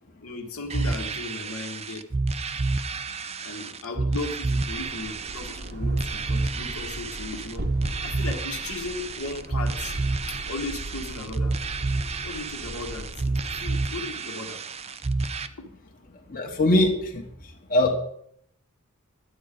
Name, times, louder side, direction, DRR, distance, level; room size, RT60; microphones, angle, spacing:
voice 1, 0.2-2.1 3.4-7.7 8.0-10.0 10.3-11.5 12.2-14.6 15.6-15.7, left 3 dB, 70° left, 2 dB, 1.7 m, -36 dB
sound 1, 0.7-15.5, right 3 dB, 30° right, 0.6 m, -29 dB
sound 2, 4.5-14.0, right 1 dB, 45° right, 1.1 m, -39 dB
voice 2, 16.3-17.3 17.7-18.0, left 1 dB, 40° left, 1 dB, 1.6 m, -21 dB
11.5 x 8.5 x 5.2 m, 0.68 s
head